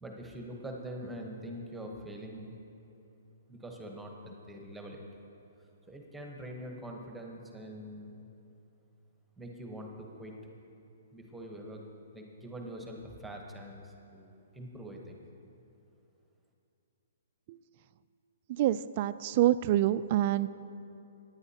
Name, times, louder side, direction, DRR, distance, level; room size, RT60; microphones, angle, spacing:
voice 1, 0.0-2.6 3.5-5.0 5.9-8.3 9.4-10.4 11.1-11.9 12.1-15.2, equal, 5° right, 1 dB, 1.0 m, -44 dB
voice 2, 18.5-20.5, right 13 dB, 40° right, 15 dB, 0.3 m, -27 dB
18.0 x 9.8 x 2.8 m, 2.7 s
hypercardioid pair, 150°, 0 cm